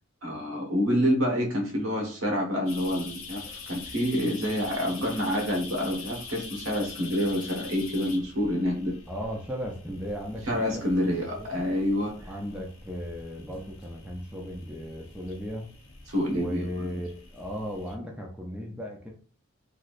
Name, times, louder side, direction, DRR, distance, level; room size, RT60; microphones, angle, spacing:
voice 1, 0.2-9.0 10.5-12.1 16.1-16.9, equal, 80° right, 0 dB, 1.1 m, -27 dB
sound 1, 2.7-17.9, left 4 dB, 75° left, 0.6 m, -44 dB
voice 2, 9.1-11.6 12.3-15.7 16.3-19.1, equal, 5° right, -1 dB, 0.5 m, -36 dB
3.1 x 2.7 x 2.5 m, 0.42 s
head